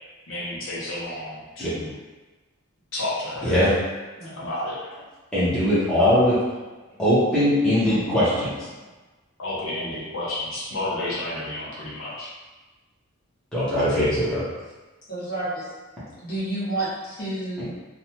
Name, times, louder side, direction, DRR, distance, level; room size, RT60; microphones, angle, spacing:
voice 1, 0.3-1.9 2.9-3.6 4.2-5.0 9.4-12.3, left 1 dB, 60° left, -8 dB, 0.7 m, -31 dB
voice 2, 5.3-6.3 7.0-8.5 13.5-14.4, equal, 5° left, -12 dB, 0.8 m, -20 dB
voice 3, 15.1-15.7 16.2-17.7, right 2 dB, 40° left, -10 dB, 1.1 m, -30 dB
2.7 x 2.2 x 2.9 m, 1.2 s
head